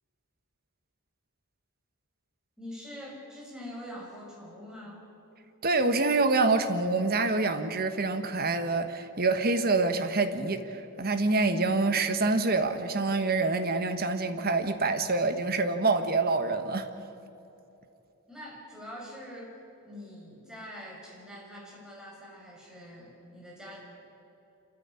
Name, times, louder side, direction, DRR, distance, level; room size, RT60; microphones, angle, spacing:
voice 1, 2.6-5.1 18.3-23.8, equal, 5° right, -3 dB, 5.7 m, -44 dB
voice 2, 5.6-16.9, right 3 dB, 45° right, 9 dB, 1.4 m, -26 dB
27.0 x 14.0 x 9.8 m, 2.9 s
head